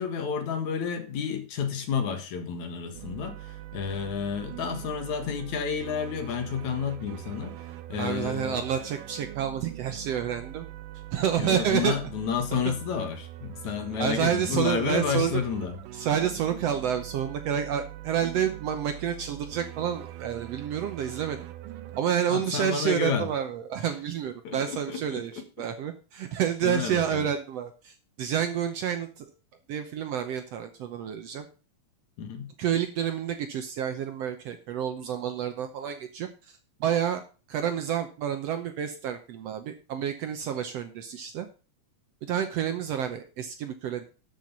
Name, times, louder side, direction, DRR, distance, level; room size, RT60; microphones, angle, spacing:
voice 1, 0.0-7.6 7.9-8.6 11.4-15.7 22.3-23.3 24.4-25.2 26.6-27.3 32.2-32.5, left 7 dB, 65° left, 2.8 m, -30 dB
sound 1, 2.9-22.0, right 14 dB, 90° right, 2.4 m, -42 dB
voice 2, 8.0-10.7 11.1-11.9 14.0-15.4 15.9-21.5 22.0-29.3 29.7-31.5 32.6-37.2 37.5-41.5 42.2-44.1, right 9 dB, 70° right, 1.7 m, -29 dB
12.5 x 6.0 x 5.4 m
omnidirectional pair, 3.6 m